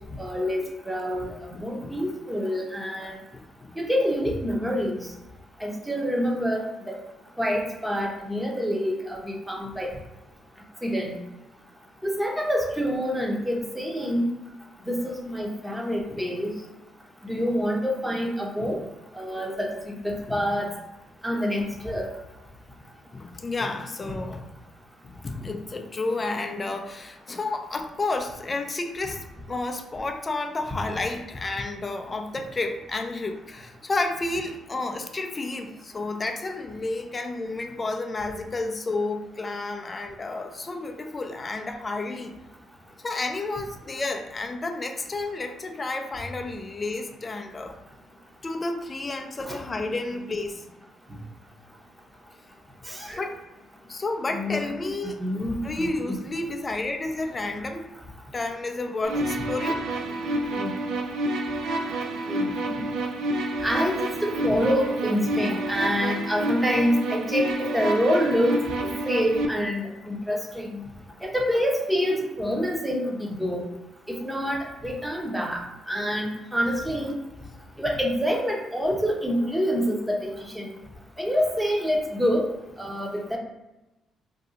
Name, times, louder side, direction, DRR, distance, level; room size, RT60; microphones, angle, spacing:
voice 1, 0.2-3.2 3.8-5.1 5.6-7.0 7.4-9.9 10.8-11.2 12.0-14.3 14.8-16.5 17.2-18.8 19.1-20.7 21.2-22.1 49.4-49.9 52.8-53.2 54.3-54.6 55.2-55.9 60.5-60.7 62.3-62.8 63.6-70.8 71.2-73.7 74.1-77.1 77.8-80.8 81.2-82.5 82.8-83.4, equal, 5° right, 0 dB, 0.8 m, -27 dB
voice 2, 1.5-2.0 3.3-3.8 16.1-16.3 18.6-18.8 20.3-20.6 23.1-24.4 25.0-42.4 43.0-47.8 48.4-50.7 53.2-53.4 53.9-55.2 55.6-57.9 58.3-59.8 62.2-62.7 63.3-63.4 82.9-83.0, left 2 dB, 30° left, 5 dB, 0.4 m, -31 dB
sound 1, 59.0-69.5, right 1 dB, 80° right, 0.4 m, -28 dB
2.7 x 2.3 x 3.7 m, 0.99 s
cardioid pair, 85°, 0 cm